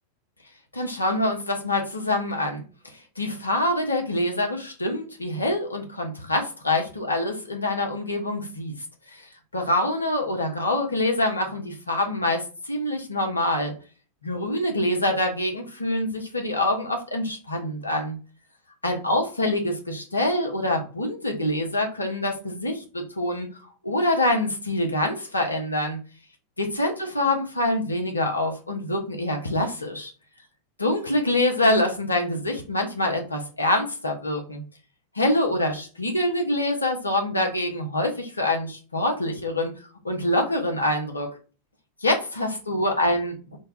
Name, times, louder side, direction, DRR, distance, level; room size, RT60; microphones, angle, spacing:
voice 1, 0.7-2.6 3.2-8.7 9.1-13.7 14.2-18.2 18.8-23.5 23.8-26.0 26.6-30.1 30.8-34.6 35.1-39.7 40.0-41.3 42.0-43.6, left 1 dB, 80° left, 2 dB, 0.7 m, -25 dB
3.3 x 2.2 x 2.4 m, 0.36 s
figure-of-eight pair, 90°, 0 cm